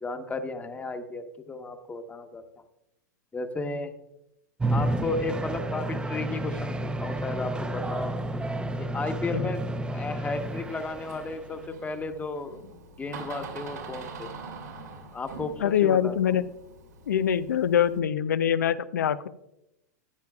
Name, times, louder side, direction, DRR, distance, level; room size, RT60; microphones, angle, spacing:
voice 1, 0.0-2.4 3.3-3.9 4.7-8.2 8.8-9.6 9.9-12.6 13.0-14.4 15.1-16.1, left 3 dB, 15° left, 7 dB, 1.1 m, -34 dB
sound 1, 4.6-11.6, right 1 dB, 10° right, 0.6 m, -31 dB
Door, 10.3-18.0, right 4 dB, 85° right, 2.5 m, -44 dB
voice 2, 15.6-16.5 17.1-19.3, left 9 dB, 85° left, 14 dB, 0.5 m, -24 dB
14.5 x 9.3 x 2.3 m, 0.85 s
hypercardioid pair, 105°, 9 cm